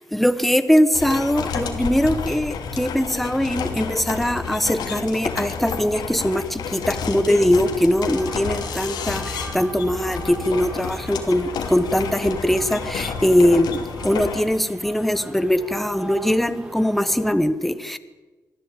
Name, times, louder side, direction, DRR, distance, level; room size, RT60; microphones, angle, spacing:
voice 1, 0.1-18.0, equal, ahead, 12 dB, 1.2 m, -21 dB
sound 1, 0.9-14.4, left 6 dB, 90° left, 3.1 m, -31 dB
sound 2, 7.9-17.3, right 1 dB, 15° right, 5.3 m, -39 dB
24.5 x 14.5 x 9.1 m, 1.3 s
cardioid pair, 125°, 7 cm